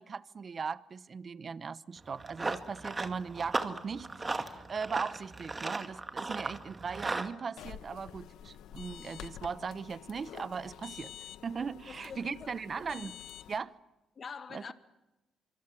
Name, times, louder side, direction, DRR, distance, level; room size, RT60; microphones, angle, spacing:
voice 1, 0.0-11.1 11.4-13.2 13.5-13.7 14.5-14.7, right 5 dB, 40° right, 1.0 m, -38 dB
Run, 2.0-7.3, right 3 dB, 25° right, 2.2 m, -37 dB
sound 1, 7.6-13.6, left 11 dB, 85° left, 1.1 m, -48 dB
voice 2, 11.9-12.5 14.2-14.7, left 5 dB, 45° left, 2.0 m, -44 dB
25.5 x 25.5 x 7.7 m
cardioid pair, 90°, 0 cm